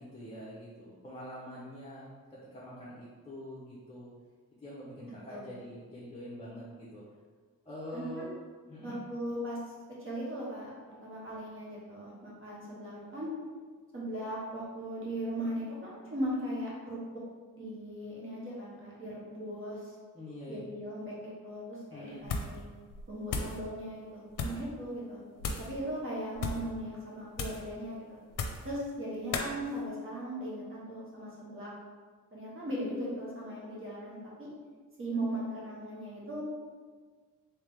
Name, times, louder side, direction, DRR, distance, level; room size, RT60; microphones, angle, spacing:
voice 1, 0.0-2.1 2.5-4.1 4.6-7.0 7.7-8.3 8.7-9.0 20.1-20.6 21.9-22.3, equal, 20° left, -9 dB, 0.7 m, -45 dB
voice 2, 7.9-8.3 8.8-9.6 10.0-13.3 13.9-17.0 17.5-19.9 20.5-22.6 23.1-25.2 25.6-28.2 28.6-31.7 32.3-34.5 35.0-36.4, right 1 dB, 40° right, -6 dB, 1.0 m, -38 dB
sound 1, 22.2-22.6 22.9-23.6 24.3-24.7 25.4-25.7 26.3-26.7 27.3-27.7 28.3-28.7 29.3-29.5, left 4 dB, 80° left, 0.5 m, -35 dB
3.4 x 3.2 x 3.4 m, 1.5 s
wide cardioid pair, 140°, 32 cm